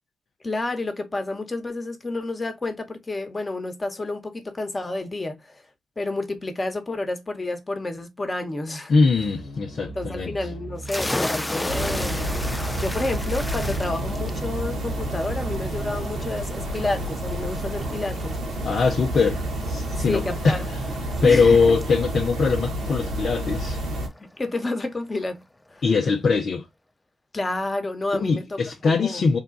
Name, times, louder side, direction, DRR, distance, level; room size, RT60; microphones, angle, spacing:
voice 1, 0.4-5.6 6.0-8.9 9.8-12.5 12.7-18.3 20.0-20.7 21.2-21.6 24.2-25.4 25.7-25.8 27.3-28.6 28.8-29.3, left 2 dB, 35° left, 1.2 m, -30 dB
voice 2, 8.9-10.3 18.6-20.6 21.2-23.8 25.8-26.7 28.1-29.4, left 4 dB, 60° left, 0.7 m, -21 dB
sound 1, 9.1-15.9, right 2 dB, 85° left, 1.1 m, -39 dB
sound 2, 10.8-24.2, left 1 dB, 15° left, 0.4 m, -35 dB
sound 3, 11.7-24.1, right 1 dB, 80° right, 1.6 m, -29 dB
3.6 x 2.4 x 3.8 m
supercardioid pair, 45°, 0 cm